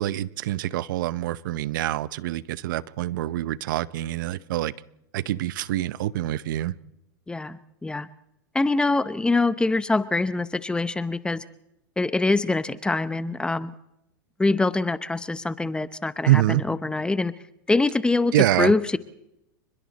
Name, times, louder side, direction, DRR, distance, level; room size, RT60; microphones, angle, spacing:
voice 1, 0.0-4.7 5.1-6.7 16.3-16.6 18.3-18.7, right 14 dB, 70° right, 19 dB, 0.8 m, -25 dB
voice 2, 7.3-8.1 8.5-11.4 12.0-13.7 14.4-17.3 17.7-18.3 18.6-19.0, left 3 dB, 10° left, 15 dB, 0.8 m, -24 dB
29.5 x 21.5 x 4.2 m, 0.86 s
hypercardioid pair, 120°, 11 cm